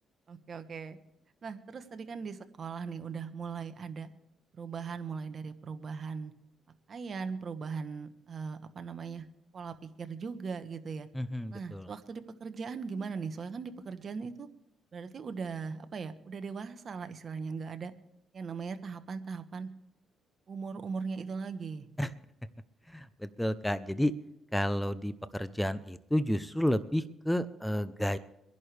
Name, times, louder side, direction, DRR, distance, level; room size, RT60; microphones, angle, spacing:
voice 1, 0.3-1.0 1.4-4.1 4.6-6.3 6.9-9.2 9.5-11.1 11.5-14.5 14.9-17.9 18.3-19.7 20.5-21.9, right 5 dB, 50° right, 10 dB, 1.1 m, -39 dB
voice 2, 11.1-11.9 22.0-22.1 22.9-24.1 24.5-28.2, equal, 5° left, 13 dB, 0.7 m, -31 dB
25.0 x 11.0 x 3.4 m, 0.84 s
cardioid pair, 90°, 0 cm